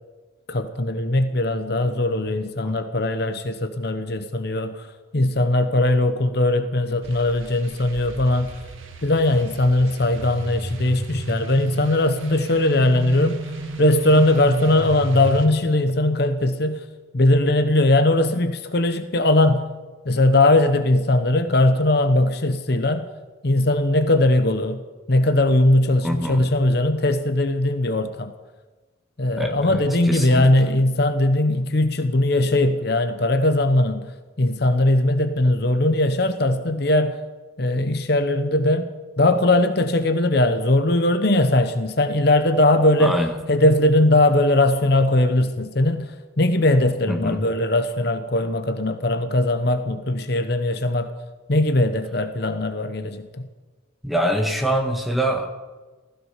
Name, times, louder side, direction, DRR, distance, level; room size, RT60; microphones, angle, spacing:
voice 1, 0.5-8.6 9.0-13.4 13.8-16.8 17.1-19.7 20.0-23.0 23.4-24.8 25.1-28.3 29.2-37.2 37.6-43.2 43.5-51.1 51.5-53.5, left 1 dB, 55° left, 9 dB, 1.0 m, -20 dB
sound 1, 7.0-15.5, right 2 dB, 85° right, 1.9 m, -33 dB
voice 2, 26.0-26.4 29.4-29.8 30.1-30.4 43.0-43.3 47.1-47.4 54.0-55.5, equal, ahead, 3 dB, 1.6 m, -24 dB
15.5 x 15.5 x 5.8 m, 1.3 s
head